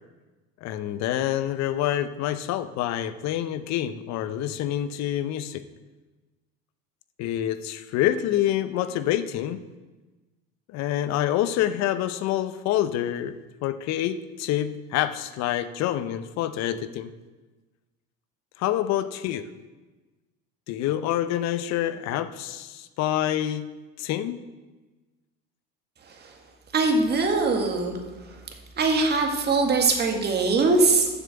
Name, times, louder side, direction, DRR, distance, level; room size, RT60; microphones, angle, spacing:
voice 1, 0.6-5.6 7.2-9.6 10.7-13.3 13.6-17.1 18.6-19.4 20.7-23.7 24.0-24.4, left 12 dB, 60° left, 12 dB, 0.8 m, -27 dB
voice 2, 26.7-27.9 28.3-28.4 28.8-31.1, right 3 dB, 35° right, 2 dB, 1.9 m, -22 dB
7.4 x 6.9 x 7.7 m, 1.2 s
supercardioid pair, 110°, 31 cm